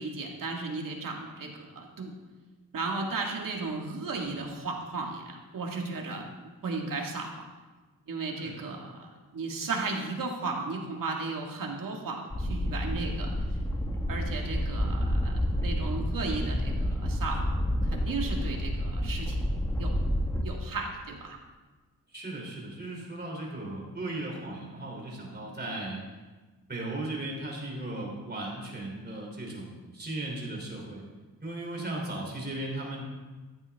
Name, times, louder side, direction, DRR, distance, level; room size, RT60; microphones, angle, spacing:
voice 1, 0.0-2.1 2.7-6.3 6.6-7.4 8.1-13.3 14.1-17.6 17.8-19.5 19.7-19.9 20.4-21.4, right 3 dB, 65° right, 0 dB, 2.0 m, -35 dB
sound 1, 12.3-20.4, equal, 10° left, 1.3 m, -29 dB
voice 2, 22.1-26.0 26.7-31.0 31.4-33.0, right 2 dB, 25° right, -2 dB, 3.2 m, -36 dB
14.5 x 11.0 x 3.6 m, 1.3 s
wide cardioid pair, 160°, 36 cm